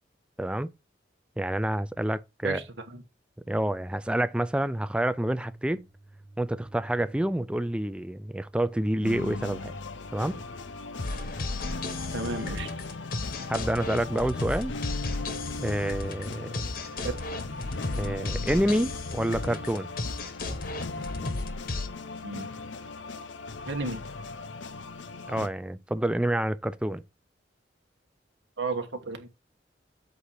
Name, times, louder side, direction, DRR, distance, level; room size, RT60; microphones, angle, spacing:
voice 1, 0.4-0.7 1.4-2.6 3.5-5.9 6.4-9.7 10.1-10.4 13.5-14.7 15.6-16.7 18.0-19.9 25.3-27.0, right 1 dB, 5° right, 0.4 m, -28 dB
voice 2, 2.4-3.0 12.1-12.7 17.0-17.2 22.2-22.5 23.7-24.0 28.6-29.3, right 3 dB, 80° right, 1.3 m, -33 dB
sound 1, 4.8-24.0, right 1 dB, 35° right, 2.2 m, -55 dB
sound 2, 9.0-25.5, left 3 dB, 90° left, 0.7 m, -39 dB
sound 3, 11.0-21.9, left 2 dB, 50° left, 1.0 m, -34 dB
8.2 x 2.8 x 6.2 m
head